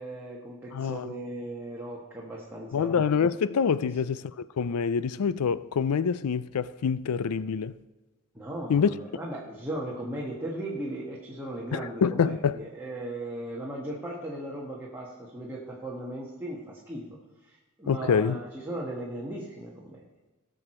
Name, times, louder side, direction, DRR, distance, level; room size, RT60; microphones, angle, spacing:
voice 1, 0.0-3.0 3.8-3.9 8.3-20.0, right 1 dB, 10° right, 1.4 m, -37 dB
voice 2, 0.7-1.1 2.7-7.7 8.7-8.9 11.7-12.6 17.9-18.4, left 6 dB, 85° left, 0.4 m, -26 dB
19.0 x 6.5 x 4.3 m
head